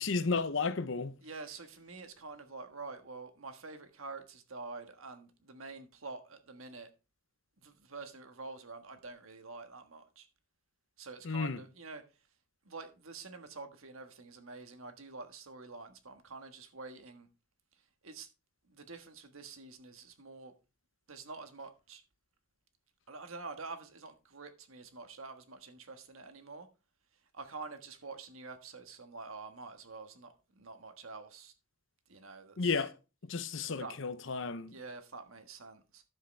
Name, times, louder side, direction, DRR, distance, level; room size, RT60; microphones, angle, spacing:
voice 1, 0.0-1.1 11.2-11.6 32.6-32.9 33.2-34.7, left 4 dB, 65° left, 0.7 m, -33 dB
voice 2, 1.2-6.9 7.6-10.3 11.0-12.0 12.6-17.3 18.0-18.3 18.7-20.5 21.1-22.0 23.1-26.7 27.3-31.5 32.1-32.8 33.6-34.0 34.7-36.0, right 3 dB, 80° right, 1.5 m, -47 dB
10.5 x 7.7 x 3.3 m
head